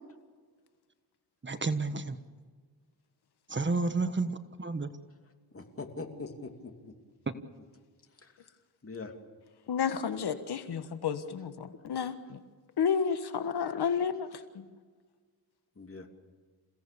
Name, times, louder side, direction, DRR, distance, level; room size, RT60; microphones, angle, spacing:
voice 1, 1.4-2.2 3.5-4.9, right 3 dB, 30° right, 10 dB, 1.4 m, -31 dB
voice 2, 5.5-6.9 8.2-8.3 8.8-9.1 15.8-16.1, left 3 dB, 35° left, 5 dB, 2.9 m, -42 dB
voice 3, 9.7-12.4 12.8-14.3 14.5-14.6, left 7 dB, 70° left, 10 dB, 1.5 m, -31 dB
28.5 x 17.0 x 7.0 m, 1.5 s
cardioid pair, 85°, 40 cm